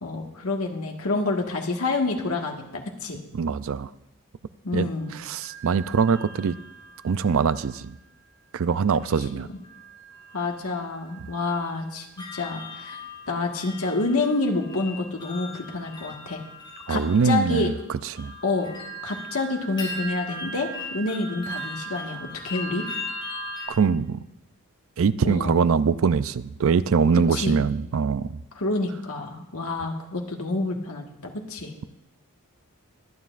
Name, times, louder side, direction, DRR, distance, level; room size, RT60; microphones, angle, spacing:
voice 1, 0.0-3.2 4.6-5.1 10.3-12.1 12.3-13.0 13.3-16.4 16.9-17.7 18.4-18.7 19.0-22.9 25.2-25.6 27.1-27.6 28.5-31.8, left 3 dB, 75° left, 1 dB, 1.6 m, -28 dB
voice 2, 3.3-3.9 4.7-6.5 7.0-8.0 8.5-9.5 16.9-18.3 23.7-24.2 25.0-28.4, right 5 dB, 60° right, 14 dB, 0.4 m, -23 dB
sound 1, 5.0-7.8 8.9-9.3 9.6-23.7, left 1 dB, 20° left, 4.0 m, -39 dB
23.0 x 9.3 x 2.5 m, 0.87 s
head